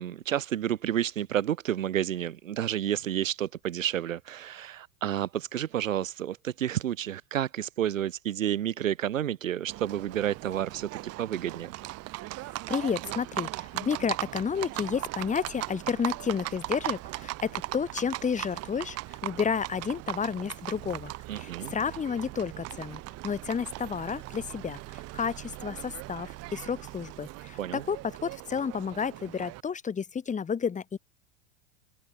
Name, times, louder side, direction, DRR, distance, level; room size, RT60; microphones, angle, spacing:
voice 1, 0.0-11.7 21.3-21.7 27.6-27.8, right 11 dB, 90° right, 0.9 m, -30 dB
Livestock farm animals working animals, 9.7-29.6, right 19 dB, 40° right, 1.3 m, -39 dB
voice 2, 12.7-31.0, left 6 dB, 20° left, 2.9 m, -31 dB
open air
hypercardioid pair, 105°, 38 cm